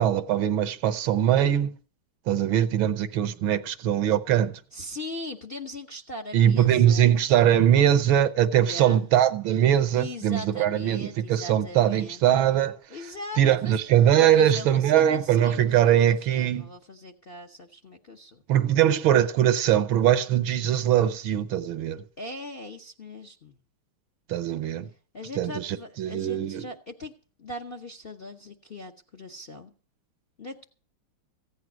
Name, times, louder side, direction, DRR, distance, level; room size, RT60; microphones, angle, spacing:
voice 1, 0.0-1.7 2.3-4.6 6.3-12.8 13.4-16.7 18.5-22.0 24.3-24.9 25.4-26.7, right 10 dB, 70° right, 1.6 m, -22 dB
voice 2, 4.7-7.2 8.6-9.1 9.9-12.2 12.9-13.8 14.1-18.4 22.2-23.6 25.1-27.1 27.4-29.7 30.4-30.6, left 1 dB, 40° left, 0.9 m, -40 dB
15.5 x 9.5 x 6.1 m
omnidirectional pair, 2.4 m